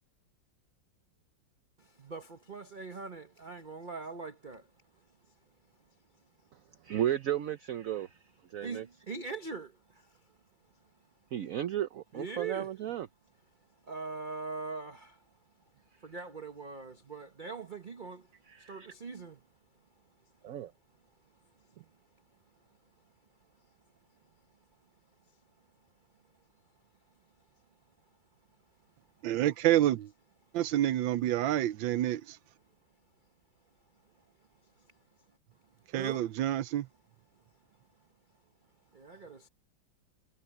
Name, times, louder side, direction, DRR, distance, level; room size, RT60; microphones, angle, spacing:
voice 1, 1.8-4.7 8.6-10.2 12.1-12.7 13.8-15.2 16.0-18.3 18.6-19.4 34.8-34.9 35.9-36.3 38.9-39.5, right 4 dB, 30° right, 1.0 m, -42 dB
voice 2, 6.8-8.2 8.5-8.9 11.3-13.1 18.5-18.9 20.4-20.7, right 11 dB, 60° right, 0.9 m, -34 dB
voice 3, 29.2-30.1 30.5-32.4 35.9-36.9, right 13 dB, 85° right, 1.4 m, -28 dB
omnidirectional pair, 2.1 m